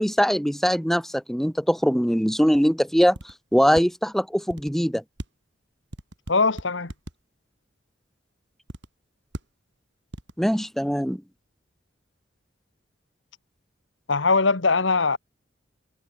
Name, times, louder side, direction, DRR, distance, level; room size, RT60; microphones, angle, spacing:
voice 1, 0.0-5.0 10.4-11.2, equal, ahead, 2.4 m, -22 dB
sound 1, 3.1-3.3 3.8-3.9 4.5-4.7 5.2-5.3 5.9-7.1 8.7-8.9 9.3-9.4 10.1-10.3, equal, 65° right, 5.8 m, -36 dB
voice 2, 6.3-6.9 14.1-15.2, left 4 dB, 85° left, 1.6 m, -21 dB
head